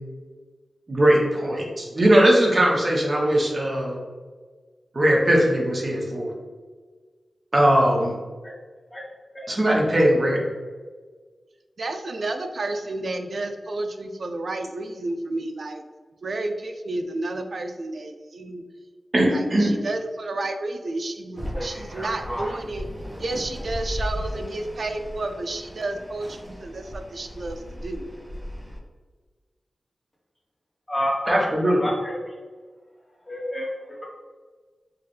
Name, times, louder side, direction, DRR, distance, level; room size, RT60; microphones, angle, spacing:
voice 1, 0.9-4.0 4.9-6.3 7.5-8.1 9.5-10.4 19.1-19.7 31.3-31.8, right 1 dB, 40° right, -2 dB, 0.9 m, -20 dB
voice 2, 11.8-15.8 16.2-18.6 19.3-22.9 23.2-28.0, right 2 dB, 65° right, 6 dB, 0.4 m, -31 dB
sound 1, 21.4-28.8, equal, 10° right, 0.5 m, -35 dB
voice 3, 30.9-31.4 31.6-32.1 33.3-34.1, equal, 25° left, -3 dB, 0.9 m, -29 dB
4.6 x 2.2 x 3.2 m, 1.5 s
wide cardioid pair, 95°, 0 cm